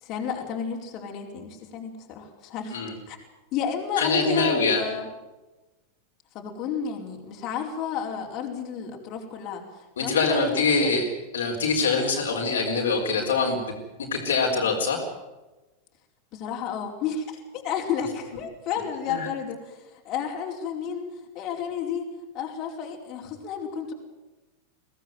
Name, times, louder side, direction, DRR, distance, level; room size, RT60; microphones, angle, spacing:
voice 1, 0.0-2.8 3.1-3.2 3.5-5.1 6.3-9.6 10.0-10.9 16.3-17.2 17.5-19.8 20.0-21.1 21.3-22.1 22.3-23.9, left 7 dB, 40° left, 1 dB, 4.7 m, -31 dB
voice 2, 4.0-4.8 10.0-11.0 11.3-13.6 14.0-15.0 19.1-19.3, left 4 dB, 65° left, 1 dB, 4.3 m, -24 dB
23.5 x 17.5 x 9.3 m, 1.1 s
figure-of-eight pair, 90°, 0 cm